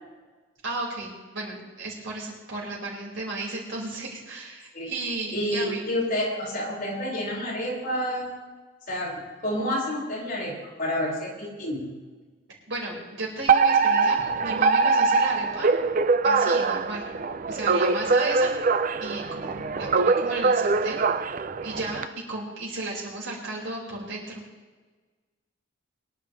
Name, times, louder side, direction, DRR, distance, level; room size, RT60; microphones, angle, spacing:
voice 1, 0.6-5.8 12.7-15.7 16.2-17.1 17.5-18.7 19.0-21.0 21.6-24.4, right 2 dB, 70° right, -4 dB, 5.0 m, -34 dB
voice 2, 5.3-8.3 8.9-11.9, left 1 dB, 45° left, -5 dB, 5.5 m, -29 dB
Alarm, 13.5-22.0, right 4 dB, 40° right, 0.5 m, -23 dB
23.5 x 11.5 x 3.3 m, 1.3 s
head